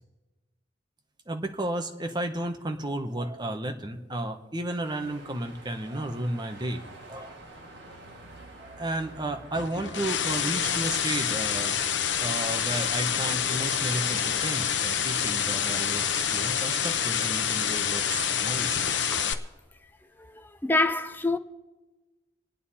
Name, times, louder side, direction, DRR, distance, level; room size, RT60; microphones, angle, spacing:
voice 1, 1.3-6.8 7.1-7.4 8.6-11.8 12.2-18.8, right 1 dB, 25° right, 1.1 m, -33 dB
sound 1, 4.8-14.7, right 2 dB, 75° right, 2.1 m, -48 dB
sound 2, 9.5-19.3, left 8 dB, 80° left, 0.9 m, -27 dB
voice 2, 20.2-21.4, left 2 dB, 10° left, 0.6 m, -27 dB
27.0 x 9.5 x 4.3 m
head